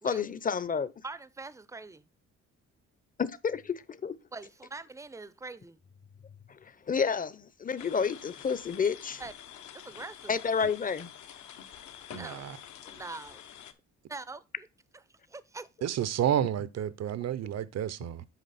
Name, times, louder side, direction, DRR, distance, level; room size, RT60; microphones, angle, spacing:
voice 1, 0.0-0.9 3.2-4.1 6.9-9.2 10.3-11.1, left 6 dB, 30° left, 0.7 m, -30 dB
voice 2, 1.0-2.0 4.3-5.8 9.2-9.3 9.7-10.4 12.2-12.4 12.8-13.4 14.1-14.7 15.3-15.7, right 3 dB, 10° right, 0.5 m, -43 dB
sound 1, 7.8-13.7, left 10 dB, 70° left, 0.9 m, -48 dB
voice 3, 12.1-12.6 15.8-18.3, right 10 dB, 60° right, 0.7 m, -30 dB
8.1 x 5.1 x 4.1 m
cardioid pair, 90°, 30 cm